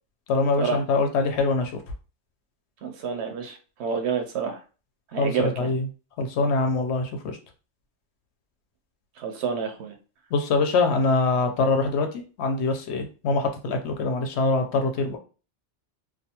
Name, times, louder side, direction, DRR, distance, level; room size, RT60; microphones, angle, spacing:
voice 1, 0.3-1.7 5.2-5.8 6.2-7.4 10.3-15.2, left 3 dB, 70° left, 5 dB, 0.8 m, -24 dB
voice 2, 2.8-4.6 5.1-5.7 9.2-9.9, right 6 dB, 70° right, 5 dB, 0.8 m, -29 dB
2.4 x 2.2 x 2.8 m, 0.34 s
omnidirectional pair, 1.2 m